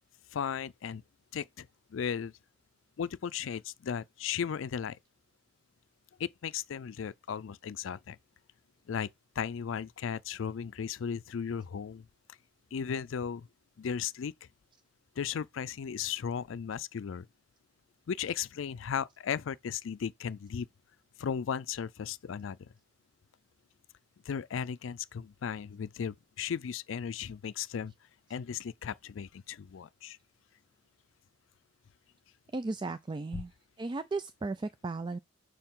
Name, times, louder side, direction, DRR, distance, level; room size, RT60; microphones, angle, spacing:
voice 1, 0.3-1.0 1.3-2.3 3.0-5.0 6.2-8.2 8.9-9.1 9.4-12.1 12.7-13.5 13.8-14.3 15.2-17.3 18.1-20.7 21.2-22.7 24.3-27.9 28.3-30.2, left 7 dB, 90° left, 0.4 m, -36 dB
voice 2, 32.5-33.5 33.8-35.2, right 3 dB, 25° right, 0.3 m, -35 dB
6.4 x 4.6 x 3.6 m
head